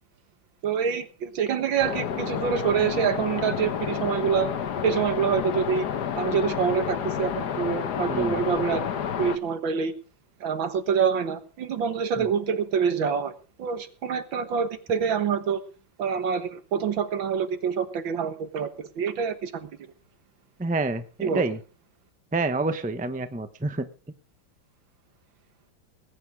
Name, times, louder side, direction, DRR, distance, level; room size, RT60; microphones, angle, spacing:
voice 1, 0.6-4.5 4.8-5.9 6.2-8.9 9.2-9.9 10.4-13.3 13.6-15.6 16.0-18.7 19.0-19.7 21.2-21.4, right 7 dB, 75° right, 10 dB, 2.1 m, -26 dB
sound 1, 1.8-9.4, left 8 dB, 60° left, 1.6 m, -30 dB
voice 2, 8.0-8.4 12.2-12.3 20.6-21.6 22.3-23.9, right 3 dB, 5° right, 10 dB, 0.6 m, -28 dB
20.0 x 9.5 x 4.8 m, 0.37 s
omnidirectional pair, 2.1 m